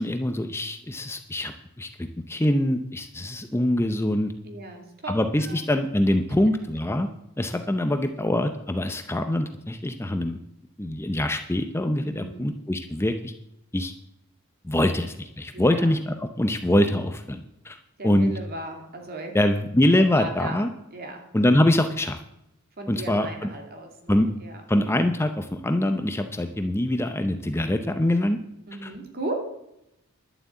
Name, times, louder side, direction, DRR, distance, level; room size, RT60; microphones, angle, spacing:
voice 1, 0.0-4.3 5.1-7.1 7.4-10.4 10.8-13.3 13.7-13.9 14.6-17.8 18.0-18.3 19.3-20.7 21.3-22.2 22.9-23.3 24.1-24.3 24.7-28.4 28.8-28.9, left 1 dB, 10° left, 7 dB, 0.6 m, -24 dB
voice 2, 4.4-5.6 12.0-12.5 15.5-15.9 18.0-19.3 20.1-20.6 20.9-21.2 22.8-24.6 28.7-29.4, right 2 dB, 45° right, 3 dB, 2.6 m, -36 dB
11.5 x 7.5 x 8.3 m, 0.84 s
head